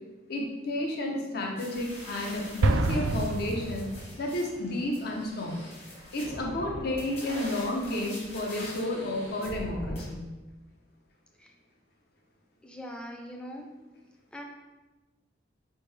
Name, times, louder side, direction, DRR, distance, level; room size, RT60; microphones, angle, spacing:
voice 1, 0.3-3.9 4.2-5.6 6.1-10.2, left 1 dB, 55° left, 0 dB, 0.8 m, -31 dB
sound 1, 1.6-10.1, equal, 35° left, 1.2 m, -43 dB
Explosion, 2.6-4.4, right 3 dB, 85° right, 0.3 m, -27 dB
voice 2, 12.6-13.7 14.3-14.4, equal, 5° left, 1 dB, 0.5 m, -41 dB
4.5 x 3.3 x 3.3 m, 1.2 s
head